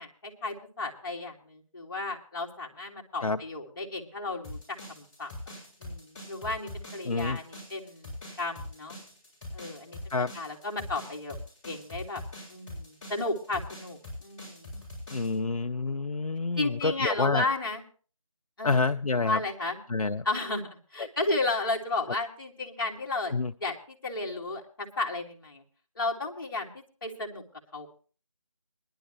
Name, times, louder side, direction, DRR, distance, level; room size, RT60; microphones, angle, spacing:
voice 1, 0.0-4.6 4.9-5.3 5.8-9.0 9.5-10.0 10.3-11.4 11.6-12.2 12.5-14.7 16.6-17.8 18.6-18.8 19.2-19.8 20.2-23.3 23.6-25.6 26.0-27.4 27.7-27.9, left 2 dB, 40° left, 0 dB, 2.1 m, -33 dB
sound 1, 4.4-15.3, left 1 dB, 10° left, 7.5 m, -43 dB
voice 2, 7.1-7.4 10.1-10.3 15.1-17.5 18.6-19.4 19.9-20.2 23.3-23.5, left 3 dB, 90° left, 8 dB, 0.6 m, -28 dB
21.0 x 11.0 x 3.0 m, 0.38 s
figure-of-eight pair, 165°, 18 cm